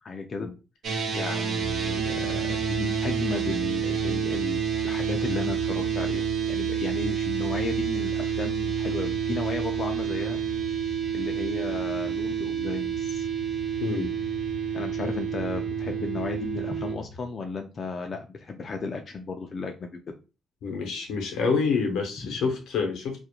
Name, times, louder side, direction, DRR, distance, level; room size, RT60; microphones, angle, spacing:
voice 1, 0.0-0.5 1.1-10.4 11.1-13.3 14.7-20.0, left 4 dB, 40° left, 4 dB, 0.4 m, -34 dB
sound 1, 0.8-16.9, right 7 dB, 65° right, 0.6 m, -29 dB
sound 2, 1.6-17.2, right 4 dB, 35° right, 0.8 m, -40 dB
voice 2, 13.8-14.1 20.6-23.2, left 5 dB, 85° left, 3 dB, 0.7 m, -27 dB
2.4 x 2.1 x 2.8 m, 0.31 s
cardioid pair, 90°, 0 cm